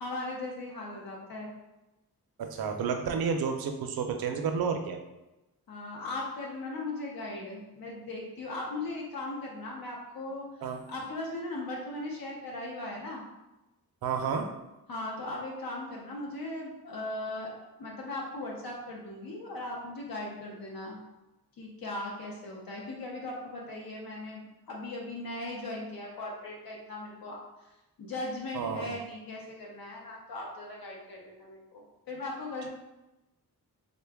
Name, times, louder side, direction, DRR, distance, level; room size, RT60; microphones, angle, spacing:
voice 1, 0.0-1.5 5.7-10.5 10.9-13.2 14.9-17.5 17.8-21.0 21.6-27.4 28.0-32.7, left 2 dB, 70° left, -2 dB, 0.7 m, -38 dB
voice 2, 2.4-5.0 10.6-10.8 14.0-14.5 28.5-29.0, right 6 dB, 75° right, 4 dB, 0.5 m, -31 dB
3.7 x 2.2 x 3.4 m, 0.99 s
wide cardioid pair, 175°, 37 cm